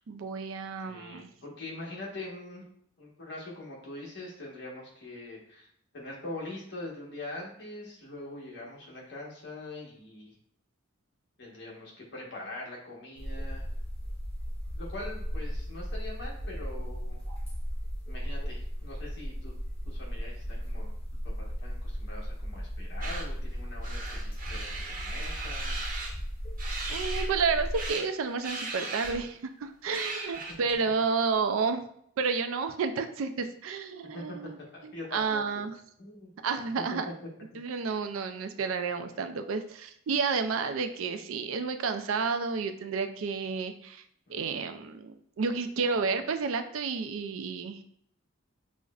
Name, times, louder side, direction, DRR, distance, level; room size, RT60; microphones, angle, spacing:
voice 1, 0.1-1.3 26.9-31.8 32.2-34.6 34.8-35.7 36.4-37.1 37.5-44.0 44.3-47.8, right 5 dB, 80° right, 8 dB, 0.4 m, -31 dB
voice 2, 0.8-2.6 3.0-5.7 5.9-10.3 11.4-13.6 14.7-17.2 18.1-19.5 19.8-20.9 21.4-25.8 34.1-34.2 34.7-35.6 36.0-36.3 44.3-44.8, left 2 dB, 55° left, -4 dB, 1.1 m, -43 dB
sound 1, 13.2-27.9, equal, 25° left, 0.6 m, -36 dB
sound 2, 23.0-23.2 23.8-26.1 26.6-27.3 27.7-28.1 28.4-29.3 29.9-30.7, right 3 dB, 40° right, 0.7 m, -37 dB
6.1 x 2.1 x 2.4 m, 0.68 s
head